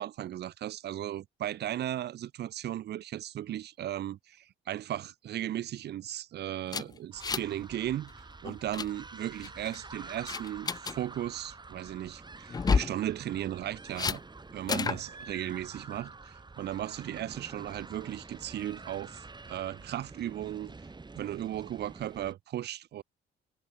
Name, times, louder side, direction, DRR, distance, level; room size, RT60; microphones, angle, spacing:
voice 1, 0.0-14.2 14.5-20.8 21.2-23.0, right 12 dB, 55° right, 0.5 m, -36 dB
sound 1, 6.7-7.6 7.9-8.1 8.4-8.9 9.4-9.8 10.3-11.0 12.5-13.0 14.0-14.2 14.7-15.0, left 5 dB, 20° left, 0.3 m, -30 dB
sound 2, 7.1-22.3, right 3 dB, 20° right, 2.4 m, -48 dB
cardioid pair, 90°, 20 cm